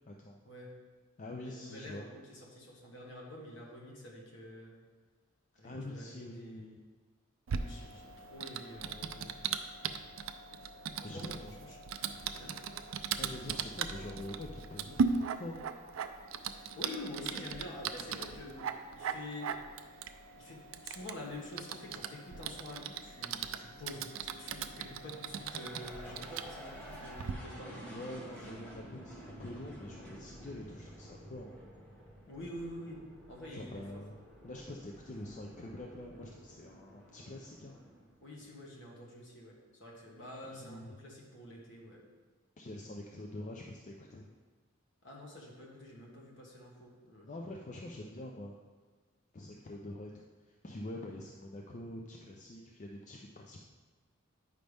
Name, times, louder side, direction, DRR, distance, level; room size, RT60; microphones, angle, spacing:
voice 1, 0.1-0.4 1.2-2.0 5.6-6.8 11.0-11.6 13.2-15.7 27.9-31.6 33.5-34.2 34.4-37.8 40.4-41.0 42.6-44.3 47.3-48.6 49.3-53.6, left 1 dB, 35° left, 0 dB, 0.5 m, -45 dB
voice 2, 1.4-4.7 5.6-6.7 7.5-9.3 11.0-11.3 11.6-11.8 12.4-12.5 16.5-18.7 18.9-19.5 19.9-20.0 20.4-28.0 32.3-33.0 33.3-34.0 38.2-42.0 45.0-47.3, left 1 dB, 60° left, -2 dB, 1.6 m, -47 dB
Typing, 7.5-27.3, right 6 dB, 70° right, 0.4 m, -39 dB
sound 1, 22.9-38.6, right 1 dB, 5° left, 1.3 m, -52 dB
9.1 x 5.2 x 3.4 m, 1.4 s
head